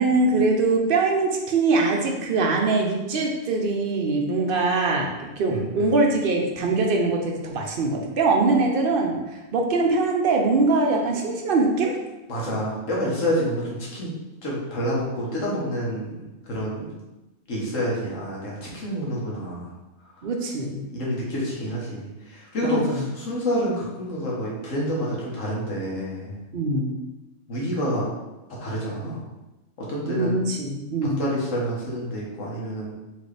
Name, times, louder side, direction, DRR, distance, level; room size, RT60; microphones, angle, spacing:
voice 1, 0.0-12.0 20.2-20.8 22.6-23.1 26.5-26.9 30.1-31.2, right 3 dB, 55° right, 1 dB, 0.7 m, -22 dB
voice 2, 5.5-5.9 12.3-14.1 14.4-16.1 16.5-16.9 17.5-19.7 20.9-26.3 27.5-28.1 28.6-29.2 29.9-30.3 31.2-32.9, equal, 75° left, -4 dB, 1.5 m, -28 dB
4.1 x 3.0 x 3.3 m, 1.0 s
omnidirectional pair, 1.4 m